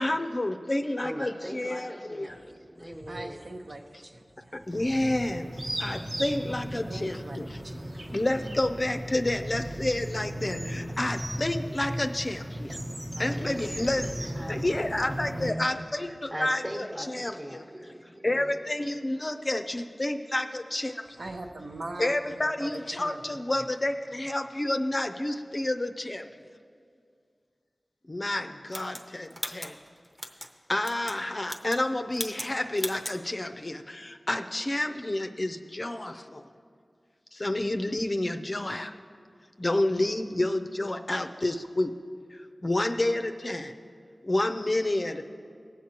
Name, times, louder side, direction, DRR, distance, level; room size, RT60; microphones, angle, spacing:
voice 1, 0.0-2.4 4.5-5.5 5.8-7.6 8.1-12.8 13.2-16.9 17.1-17.6 18.2-20.9 22.0-26.2 28.1-29.7 30.7-36.4 37.3-38.9 39.6-41.9 42.6-43.7 44.2-45.2, left 1 dB, 35° left, 6 dB, 0.5 m, -29 dB
voice 2, 1.0-3.4 13.1-18.7, equal, 20° right, -1 dB, 1.2 m, -42 dB
voice 3, 2.8-4.5 5.7-5.9 6.9-8.2 21.2-23.7, right 2 dB, 70° right, 3 dB, 0.8 m, -42 dB
sound 1, 4.7-15.5, equal, 45° right, 1.1 m, -36 dB
sound 2, 28.7-30.5 30.8-31.2 31.4-31.9 32.1-32.5 32.8-33.2, equal, 5° right, 0.8 m, -37 dB
20.0 x 7.5 x 2.9 m, 2.2 s
wide cardioid pair, 80°, 0 cm